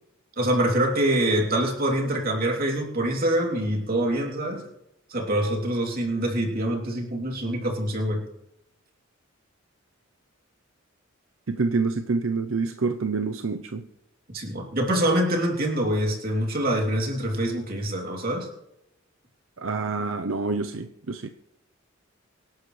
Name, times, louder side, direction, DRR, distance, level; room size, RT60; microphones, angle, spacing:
voice 1, 0.4-4.7 5.1-8.2 14.3-18.5, right 1 dB, 45° right, 0 dB, 3.1 m, -25 dB
voice 2, 11.5-13.9 19.6-21.3, right 4 dB, 75° right, 7 dB, 0.7 m, -27 dB
25.0 x 11.5 x 3.3 m, 0.85 s
head